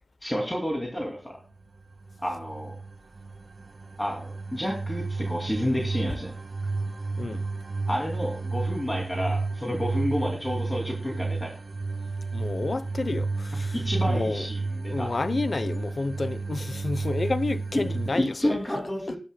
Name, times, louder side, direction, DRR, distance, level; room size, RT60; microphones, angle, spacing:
voice 1, 0.2-1.4 2.2-2.8 4.0-6.3 7.9-11.5 13.5-15.1 17.7-17.8 18.1-19.2, equal, 20° left, 2.6 m, -30 dB
sound 1, 1.8-18.1, right 3 dB, 80° right, 2.3 m, -32 dB
voice 2, 12.3-13.8 14.1-14.5 14.9-18.5, left 3 dB, 60° left, 0.6 m, -30 dB
20.5 x 10.0 x 2.2 m
wide cardioid pair, 85°, 0 cm